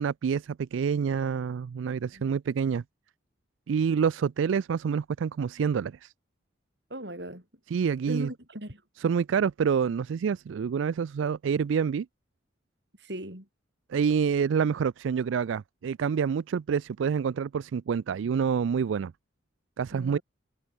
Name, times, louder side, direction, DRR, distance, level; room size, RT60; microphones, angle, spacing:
voice 1, 0.0-2.8 3.7-6.1 7.7-8.3 9.0-12.1 13.9-19.1 19.8-20.2, right 6 dB, 80° right, 0.3 m, -27 dB
voice 2, 6.9-7.4 8.1-8.8 13.0-13.5 19.9-20.2, right 1 dB, 60° right, 7.8 m, -38 dB
head